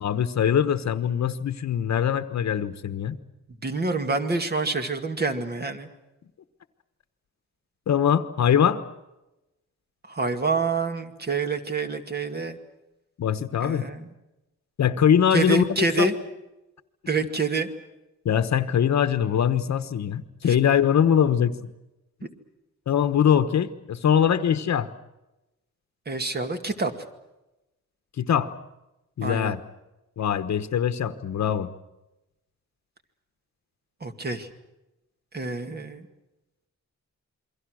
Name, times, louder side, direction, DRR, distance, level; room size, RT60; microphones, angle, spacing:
voice 1, 0.0-3.2 7.9-8.8 13.2-13.9 14.8-16.1 18.2-21.7 22.9-24.9 28.2-28.5 29.2-29.6 30.2-31.7, left 8 dB, 70° left, 11 dB, 1.2 m, -22 dB
voice 2, 3.6-5.9 10.1-12.6 13.6-14.1 15.3-16.1 17.1-17.7 20.5-20.6 26.1-26.9 29.2-29.5 34.0-34.5 35.3-36.1, right 3 dB, 35° right, 6 dB, 2.2 m, -27 dB
28.0 x 23.5 x 6.4 m, 0.96 s
wide cardioid pair, 180°, 29 cm